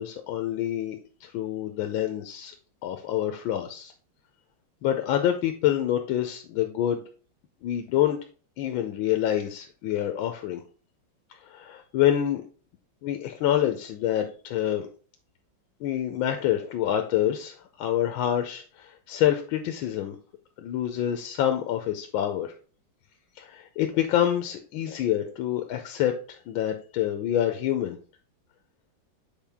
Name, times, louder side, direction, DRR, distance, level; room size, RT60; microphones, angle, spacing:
voice 1, 0.0-2.5 2.8-3.9 4.8-7.0 7.6-8.2 8.6-10.6 11.4-12.4 13.0-14.9 15.8-20.2 20.6-22.5 23.4-28.0, left 11 dB, 85° left, 5 dB, 1.5 m, -27 dB
7.4 x 4.3 x 3.5 m, 0.39 s
omnidirectional pair, 2.2 m